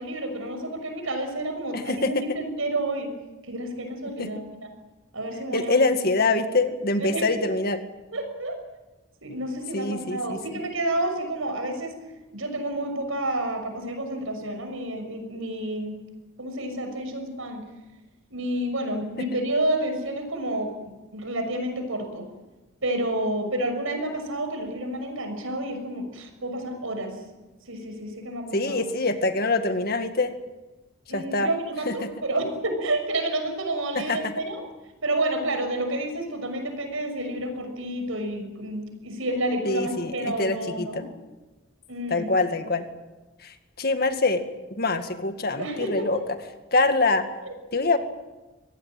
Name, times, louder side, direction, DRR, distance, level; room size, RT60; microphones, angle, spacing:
voice 1, 0.0-3.1 3.4-4.4 5.1-5.8 6.2-6.5 7.0-7.2 8.1-8.6 9.2-12.0 12.3-15.9 16.4-17.6 18.3-22.3 22.8-27.1 27.7-28.8 31.1-34.6 35.0-41.1 41.9-42.4 45.6-46.2 47.4-47.5, right 1 dB, 85° right, 6 dB, 6.2 m, -30 dB
voice 2, 1.7-2.2 4.2-4.3 5.5-7.8 9.7-10.4 19.2-19.3 28.5-30.3 31.1-31.5 31.9-32.1 34.0-34.3 39.6-41.0 42.1-42.8 43.4-44.4 44.8-46.2 46.7-47.2 47.7-48.0, left 3 dB, 50° left, 8 dB, 2.0 m, -24 dB
24.5 x 18.0 x 9.1 m, 1.1 s
head